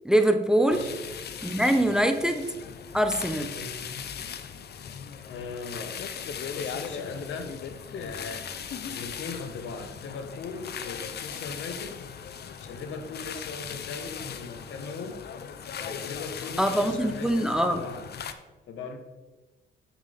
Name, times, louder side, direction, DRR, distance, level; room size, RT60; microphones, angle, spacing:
voice 1, 0.0-0.8 1.4-2.5 2.9-3.5 16.6-17.8, right 1 dB, 5° right, 7 dB, 0.6 m, -23 dB
sound 1, 0.7-18.3, left 7 dB, 55° left, 0.7 m, -38 dB
voice 2, 1.7-2.1 3.5-4.1 5.2-6.0 6.5-7.5 7.9-8.5 8.9-12.0 12.6-15.2 15.8-18.0 18.7-19.0, left 4 dB, 75° left, 6 dB, 1.1 m, -39 dB
7.3 x 7.3 x 3.5 m, 1.2 s
cardioid pair, 90°, 20 cm